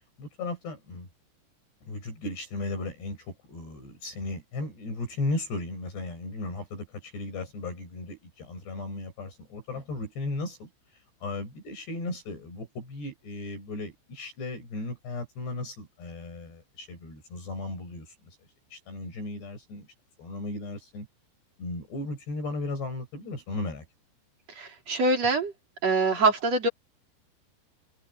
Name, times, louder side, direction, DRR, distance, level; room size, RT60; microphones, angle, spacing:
voice 1, 0.2-1.1 1.8-18.2 18.7-19.9 20.2-21.1 21.6-23.8, left 2 dB, 65° left, 9.9 m, -36 dB
voice 2, 24.6-25.5 25.8-26.7, right 3 dB, 35° right, 4.4 m, -24 dB
omnidirectional pair, 5.3 m